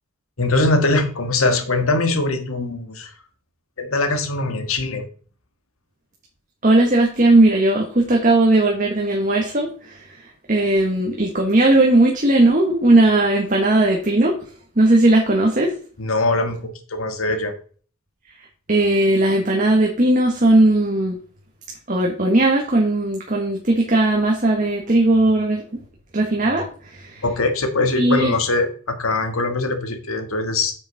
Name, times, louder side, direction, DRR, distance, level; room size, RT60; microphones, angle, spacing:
voice 1, 0.4-3.1 3.8-5.1 16.0-17.5 27.2-30.7, left 2 dB, 90° left, 7 dB, 1.6 m, -22 dB
voice 2, 6.6-10.0 10.5-14.4 14.8-15.7 18.7-21.2 21.9-25.8 26.1-26.7 26.9-27.2 28.0-28.3, right 2 dB, 40° right, 0 dB, 1.5 m, -17 dB
8.4 x 6.6 x 4.0 m, 0.41 s
head